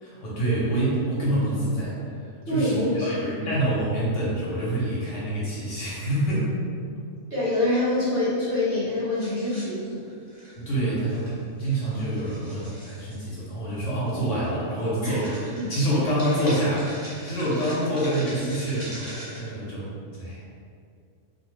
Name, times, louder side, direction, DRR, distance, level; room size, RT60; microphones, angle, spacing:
voice 1, 0.0-6.5 10.5-15.4 15.7-20.4, right 1 dB, 65° left, -7 dB, 1.0 m, -27 dB
voice 2, 2.5-3.1 7.3-10.0 15.0-15.2 15.6-15.7 17.4-17.5, left 1 dB, 45° right, -11 dB, 0.8 m, -25 dB
sound 1, 9.1-10.7 11.1-11.3 11.6-13.2 14.1-14.3 14.6-14.8 15.1-19.4, right 1 dB, 20° right, 0.6 m, -41 dB
2.5 x 2.0 x 3.1 m, 2.3 s
omnidirectional pair, 1.4 m